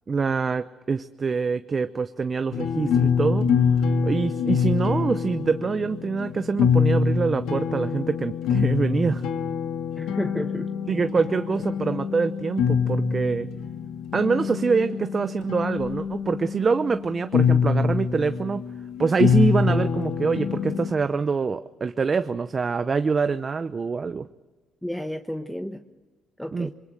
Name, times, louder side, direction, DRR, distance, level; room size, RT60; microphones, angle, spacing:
voice 1, 0.1-3.5 4.0-9.2 10.9-13.5 14.1-18.6 19.0-24.3 26.5-26.7, right 5 dB, 35° right, 10 dB, 0.8 m, -25 dB
sound 1, 2.5-20.9, left 6 dB, 90° left, 2.1 m, -25 dB
voice 2, 10.0-10.7 24.8-25.8 26.4-26.7, equal, 5° left, 7 dB, 1.1 m, -31 dB
26.0 x 23.0 x 6.6 m, 1.3 s
cardioid pair, 90°, 0 cm